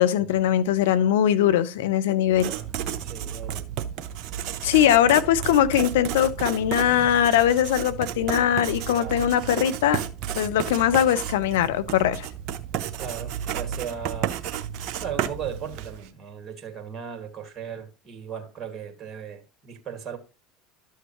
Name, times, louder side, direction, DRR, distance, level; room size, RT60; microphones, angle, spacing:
voice 1, 0.0-2.5 4.6-10.0 10.4-12.3, left 10 dB, 75° left, 0.7 m, -21 dB
Writing, 2.3-16.1, right 9 dB, 55° right, 0.9 m, -32 dB
voice 2, 3.0-3.7 4.8-5.0 6.9-7.1 8.9-9.2 12.9-14.4 15.0-20.2, right 7 dB, 35° right, 2.1 m, -37 dB
12.0 x 6.5 x 3.1 m
hypercardioid pair, 75°, 0 cm